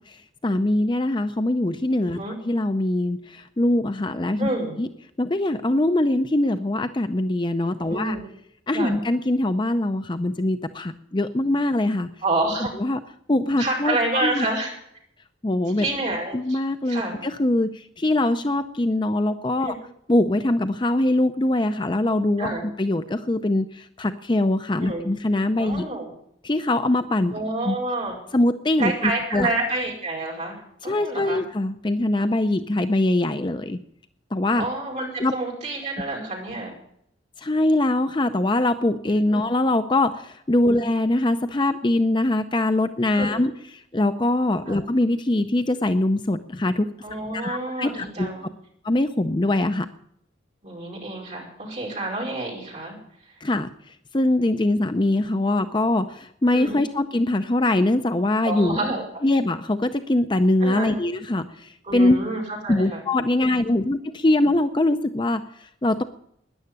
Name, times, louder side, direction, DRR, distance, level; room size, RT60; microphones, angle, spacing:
voice 1, 0.1-4.5 4.8-4.9 5.2-8.2 8.7-12.1 12.8-13.0 13.3-14.5 15.4-15.9 16.3-19.8 20.1-22.5 22.8-25.8 26.4-27.3 27.6-27.8 28.3-29.5 30.8-33.8 34.3-34.7 35.2-35.3 37.4-46.9 47.3-48.3 48.8-49.9 53.4-58.8 59.2-62.2 62.7-66.0, left 1 dB, 25° left, 9 dB, 0.5 m, -23 dB
voice 2, 4.4-4.7 7.8-8.2 8.7-8.9 12.2-12.7 13.6-14.8 15.8-16.6 16.9-17.2 19.6-19.7 22.4-22.6 24.8-25.0 25.6-26.1 27.3-28.1 28.8-31.4 34.6-36.7 39.3-39.5 40.7-40.8 43.1-43.4 44.7-44.8 47.0-48.5 50.6-53.0 56.5-56.8 58.4-59.0 60.6-60.9 61.8-63.0 63.5-63.6, right 2 dB, 35° right, -2 dB, 5.0 m, -28 dB
13.5 x 10.5 x 9.7 m, 0.73 s
head